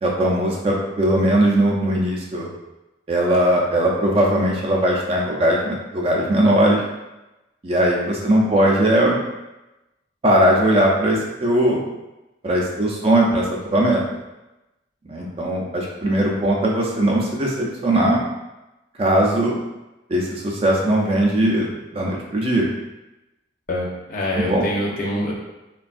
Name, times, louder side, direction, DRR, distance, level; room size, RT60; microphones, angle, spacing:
voice 1, 0.0-2.5 3.1-6.8 7.6-9.2 10.2-11.8 12.4-14.0 15.1-18.2 19.0-19.6 20.1-22.7 24.3-24.7, right 1 dB, 30° right, -2 dB, 0.4 m, -19 dB
voice 2, 23.7-25.3, left 1 dB, 45° left, -3 dB, 0.6 m, -25 dB
3.3 x 2.2 x 2.4 m, 1.0 s
head